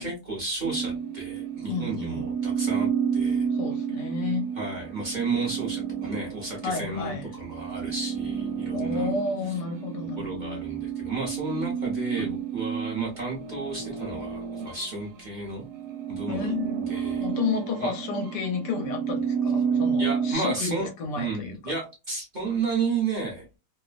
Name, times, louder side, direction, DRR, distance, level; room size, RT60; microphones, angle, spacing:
voice 1, 0.0-3.5 4.5-9.1 9.4-9.5 10.2-15.6 16.1-17.3 17.8-17.9 20.0-20.9 21.1-23.5, right 3 dB, 35° right, 0.8 m, -32 dB
sound 1, 0.6-15.2 15.6-20.3, right 7 dB, 80° right, 1.2 m, -30 dB
voice 2, 1.7-2.3 3.6-4.4 6.6-7.3 8.7-10.6 12.2-12.5 16.3-16.8 17.2-21.7, left 4 dB, 80° left, 1.4 m, -31 dB
3.1 x 2.0 x 2.4 m
omnidirectional pair, 1.8 m